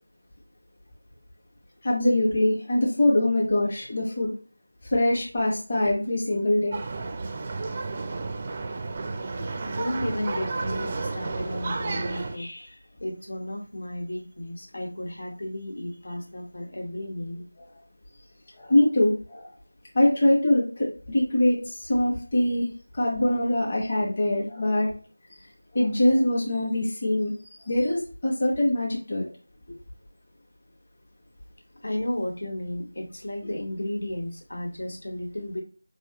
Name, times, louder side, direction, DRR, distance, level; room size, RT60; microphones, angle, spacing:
voice 1, 1.8-4.3 4.9-6.8 12.1-12.7 18.6-19.5 19.9-22.7 22.9-24.9 25.7-29.2, left 1 dB, 30° left, -4 dB, 0.9 m, -23 dB
sound 1, 6.7-12.4, right 3 dB, 20° right, 0.4 m, -32 dB
voice 2, 9.6-12.5 13.0-17.4 31.8-35.6, left 1 dB, 65° left, 3 dB, 1.2 m, -33 dB
4.5 x 3.0 x 2.9 m, 0.39 s
figure-of-eight pair, 170°, 0 cm